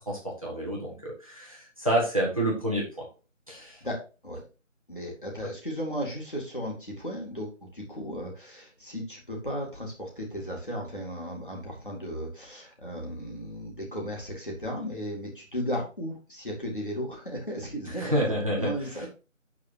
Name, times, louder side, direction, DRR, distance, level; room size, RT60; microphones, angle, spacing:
voice 1, 0.1-3.1 3.5-3.8 17.9-19.1, right 1 dB, 25° right, -3 dB, 1.9 m, -29 dB
voice 2, 3.6-4.4 4.9-19.1, equal, 40° left, -2 dB, 2.5 m, -35 dB
11.5 x 4.7 x 2.8 m, 0.32 s
figure-of-eight pair, 180°, 39 cm